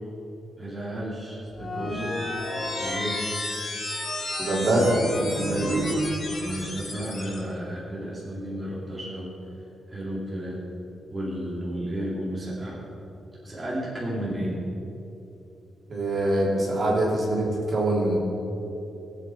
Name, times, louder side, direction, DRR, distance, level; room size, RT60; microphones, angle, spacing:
voice 1, 0.6-2.2 2.8-3.3 5.2-5.8 6.4-9.3 9.9-10.6 11.1-12.8 13.4-14.6, equal, 15° right, -8 dB, 2.7 m, -32 dB
sound 1, 1.5-7.4, left 2 dB, 45° left, 3.1 m, -33 dB
voice 2, 4.4-4.9 15.9-18.2, right 1 dB, 40° right, -5 dB, 3.3 m, -23 dB
sound 2, 4.6-6.7, right 2 dB, 75° right, 2.4 m, -30 dB
20.5 x 8.3 x 4.5 m, 3.0 s
wide cardioid pair, 150°, 0 cm